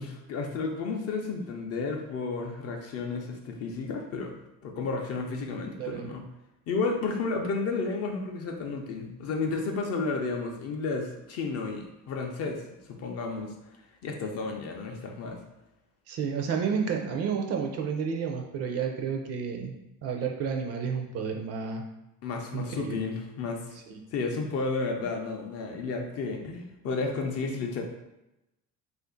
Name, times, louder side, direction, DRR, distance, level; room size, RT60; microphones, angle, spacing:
voice 1, 0.0-6.2 6.7-12.6 12.9-13.5 14.0-15.4 22.2-23.6 24.1-27.8, left 4 dB, 45° left, 2 dB, 0.5 m, -32 dB
voice 2, 5.8-6.1 16.1-19.7 20.0-21.9 22.5-23.1 23.9-24.0, right 6 dB, 45° right, 3 dB, 0.4 m, -31 dB
2.5 x 2.4 x 3.7 m, 0.92 s
cardioid pair, 155°, 35 cm